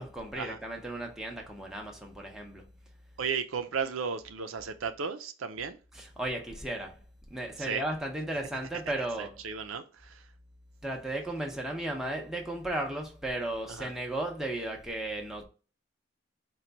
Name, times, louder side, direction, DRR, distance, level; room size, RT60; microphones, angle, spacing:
voice 1, 0.0-2.7 5.9-7.0 7.3-9.3 10.8-15.4, right 1 dB, ahead, 0.7 m, -35 dB
voice 2, 3.2-5.8 7.6-7.8 9.2-10.3 13.7-13.9, right 6 dB, 80° right, 0.5 m, -35 dB
4.4 x 2.3 x 3.9 m
head